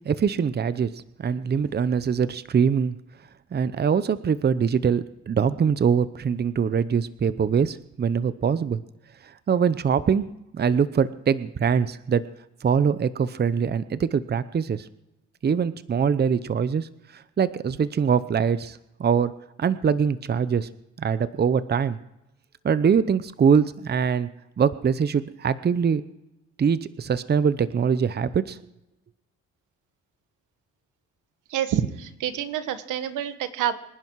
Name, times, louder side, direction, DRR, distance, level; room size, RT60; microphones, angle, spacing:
voice 1, 0.1-2.9 3.5-8.8 9.2-12.3 12.6-14.9 15.4-20.7 21.0-22.0 22.6-24.3 24.6-26.0 26.6-28.6, right 6 dB, 35° right, 15 dB, 0.8 m, -23 dB
voice 2, 31.5-33.7, right 10 dB, 85° right, 11 dB, 1.4 m, -27 dB
25.5 x 10.5 x 4.7 m, 0.93 s
cardioid pair, 90°, 30 cm